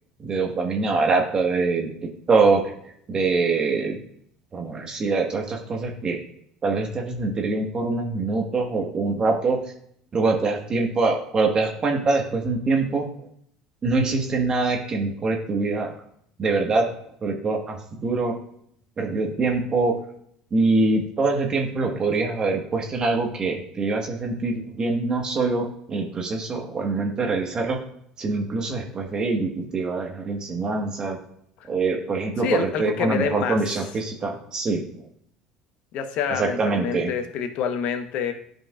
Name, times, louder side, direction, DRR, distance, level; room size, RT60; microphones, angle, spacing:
voice 1, 0.2-1.9 2.3-2.7 3.1-4.0 4.5-6.2 6.6-9.6 10.1-13.1 13.8-15.9 16.4-16.9 17.2-18.3 19.0-19.9 20.5-27.8 28.2-31.2 31.7-34.8 36.4-37.1, right 3 dB, 35° right, 2 dB, 1.5 m, -24 dB
voice 2, 32.4-33.6 35.9-38.3, left 6 dB, 65° left, 7 dB, 1.0 m, -27 dB
11.5 x 5.2 x 2.4 m, 0.68 s
hypercardioid pair, 75°, 2 cm